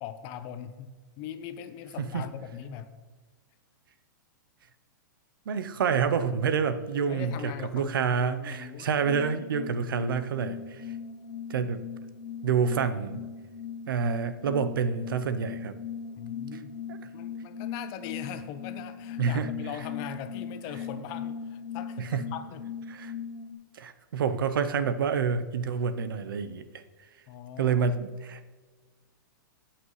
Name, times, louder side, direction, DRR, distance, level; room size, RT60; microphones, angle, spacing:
voice 1, 0.0-2.9 7.1-8.9 16.2-22.7 27.3-27.8, left 9 dB, 35° left, 10 dB, 0.7 m, -41 dB
voice 2, 5.5-10.8 11.5-11.8 12.4-13.3 13.9-15.8 16.5-16.6 16.9-17.0 19.2-19.5 22.0-22.2 22.9-23.1 23.7-26.8 27.6-28.5, right 6 dB, 80° right, 11 dB, 0.8 m, -28 dB
sound 1, 9.0-23.5, left 6 dB, 65° left, 1.1 m, -39 dB
16.0 x 5.8 x 3.2 m, 1.4 s
hypercardioid pair, 145°, 11 cm